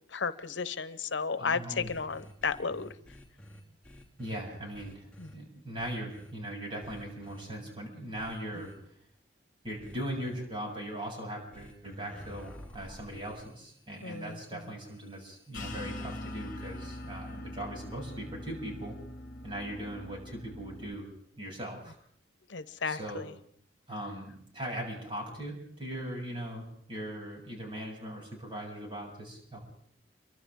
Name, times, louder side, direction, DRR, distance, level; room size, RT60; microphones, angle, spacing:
voice 1, 0.1-2.9 5.2-5.3 14.0-14.4 22.5-23.2, left 5 dB, 85° left, 14 dB, 0.9 m, -33 dB
voice 2, 1.4-1.9 4.2-8.7 9.6-19.0 19.4-21.1 21.4-21.9 22.8-23.3 23.9-29.6, right 1 dB, 25° right, -1 dB, 7.5 m, -39 dB
sound 1, 1.8-4.4 4.7-5.3 5.8-6.3 6.8-7.4 8.2-8.7 9.8-10.4 11.5-17.3, equal, 5° left, 3.1 m, -52 dB
sound 2, 15.5-20.9, left 1 dB, 45° left, 1.8 m, -42 dB
29.0 x 24.0 x 3.8 m, 0.65 s
head